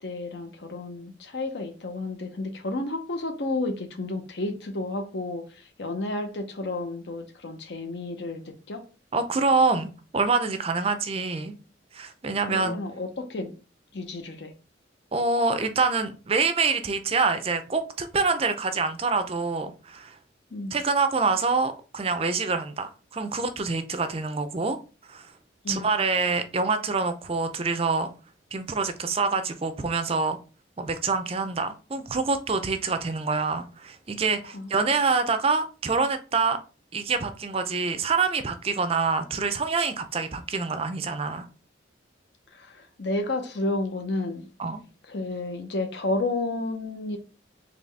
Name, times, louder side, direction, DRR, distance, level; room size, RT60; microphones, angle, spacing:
voice 1, 0.0-8.9 12.5-13.5 13.9-14.5 20.5-20.8 25.6-26.0 34.5-34.7 42.5-44.5 45.1-47.2, left 2 dB, 65° left, 0.8 m, -31 dB
voice 2, 9.1-11.5 11.9-12.8 15.1-20.2 20.7-24.8 25.1-25.3 25.7-28.1 28.5-30.4 30.8-36.6 36.9-41.5 44.6-44.8, right 4 dB, 30° right, 0.5 m, -26 dB
4.0 x 3.1 x 3.3 m
head